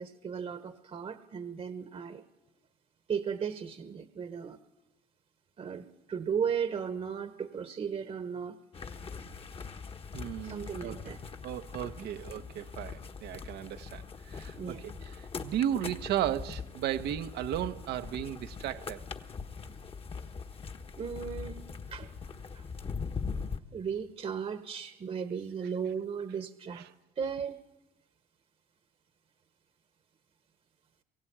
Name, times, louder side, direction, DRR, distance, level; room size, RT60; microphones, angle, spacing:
voice 1, 0.0-2.2 3.1-4.6 5.6-8.6 10.4-11.2 12.0-12.1 14.5-14.8 21.0-22.1 22.5-22.6 23.7-26.8 27.2-27.6, right 7 dB, 40° right, 1.2 m, -36 dB
sound 1, 8.7-23.6, left 5 dB, 35° left, 1.4 m, -41 dB
voice 2, 10.1-11.2 11.4-19.0 26.7-26.9, right 11 dB, 75° right, 1.1 m, -35 dB
22.5 x 16.0 x 8.8 m
cardioid pair, 110°, 17 cm